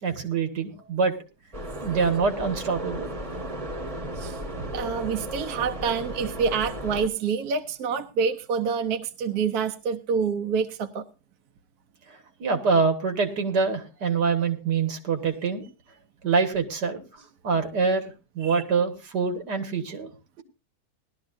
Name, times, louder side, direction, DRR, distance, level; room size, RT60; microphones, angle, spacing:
voice 1, 0.0-1.1 1.8-3.1 12.4-15.6 16.2-17.0 17.4-18.1 18.4-20.1, right 5 dB, 85° right, 7 dB, 2.4 m, -25 dB
sound 1, 1.5-7.1, equal, 25° right, 1.2 m, -35 dB
voice 2, 4.2-11.0 18.4-18.6, right 6 dB, 70° right, 8 dB, 1.3 m, -27 dB
19.5 x 12.5 x 2.6 m, 0.29 s
omnidirectional pair, 1.8 m